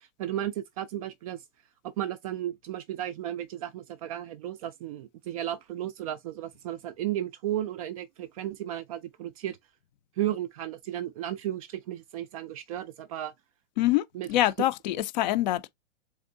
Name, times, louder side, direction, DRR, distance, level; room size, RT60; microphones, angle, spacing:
voice 1, 0.0-1.4 1.8-9.6 10.2-13.3 14.1-14.3, right 12 dB, 30° right, 0.4 m, -34 dB
voice 2, 13.8-15.7, left 15 dB, 35° left, 0.5 m, -25 dB
3.6 x 3.4 x 3.8 m
hypercardioid pair, 125°, 37 cm